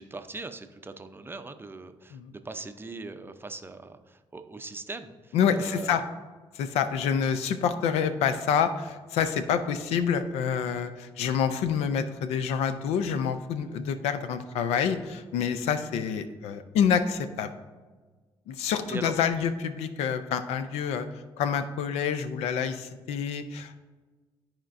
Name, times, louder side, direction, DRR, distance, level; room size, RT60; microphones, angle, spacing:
voice 1, 0.0-6.0 18.9-19.1, right 3 dB, 20° right, 9 dB, 0.6 m, -40 dB
voice 2, 5.3-6.0 6.5-17.5 18.5-21.1 21.4-23.8, left 7 dB, 90° left, 11 dB, 0.5 m, -27 dB
13.0 x 4.3 x 2.6 m, 1.4 s
cardioid pair, 80°, 11 cm